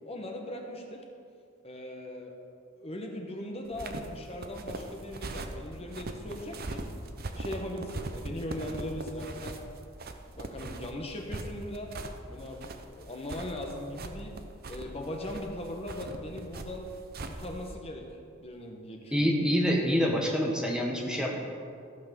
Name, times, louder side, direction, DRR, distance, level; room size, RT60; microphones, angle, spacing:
voice 1, 0.0-1.0 1.6-2.4 2.8-6.8 7.4-9.6 10.3-11.9 12.3-14.3 14.7-16.9 17.2-18.1 18.4-19.3, left 1 dB, 30° left, 2 dB, 1.2 m, -39 dB
sound 1, 3.7-17.8, right 2 dB, 45° right, 0.8 m, -40 dB
voice 2, 19.1-21.4, equal, 5° right, -1 dB, 1.1 m, -26 dB
15.0 x 6.1 x 6.8 m, 2.4 s
head